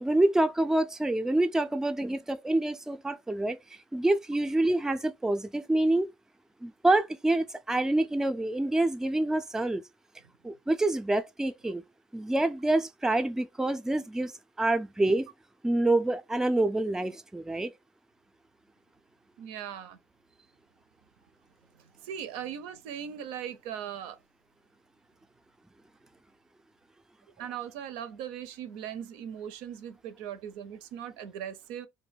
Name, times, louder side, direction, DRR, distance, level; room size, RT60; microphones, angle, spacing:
voice 1, 0.0-3.6 3.9-6.1 6.6-9.8 10.4-11.8 12.1-14.3 14.6-15.3 15.6-17.7, right 2 dB, 5° right, 0.3 m, -27 dB
voice 2, 19.4-20.0 21.7-24.2 27.4-31.9, right 9 dB, 85° right, 0.4 m, -39 dB
2.2 x 2.1 x 3.3 m
supercardioid pair, 90°, 9 cm